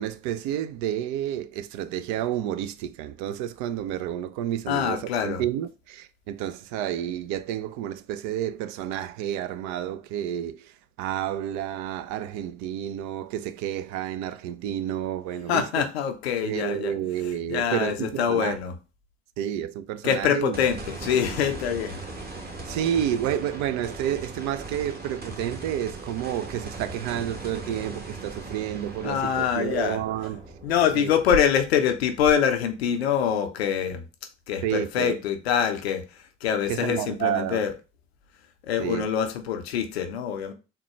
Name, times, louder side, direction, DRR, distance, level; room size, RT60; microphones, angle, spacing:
voice 1, 0.0-15.9 16.4-18.6 19.4-20.6 22.6-30.4 30.9-31.1 34.6-35.2 36.7-37.6 38.8-39.1, right 10 dB, 70° right, 0.4 m, -30 dB
voice 2, 4.7-5.4 15.5-16.9 17.2-18.7 20.0-22.0 29.0-30.0 30.6-34.0 34.5-37.7 38.6-40.5, left 8 dB, 90° left, 0.5 m, -25 dB
sound 1, 20.5-32.9 33.3-33.4 36.8-36.9, right 3 dB, 30° right, 1.2 m, -39 dB
3.6 x 2.2 x 4.2 m
hypercardioid pair, 50°, 30 cm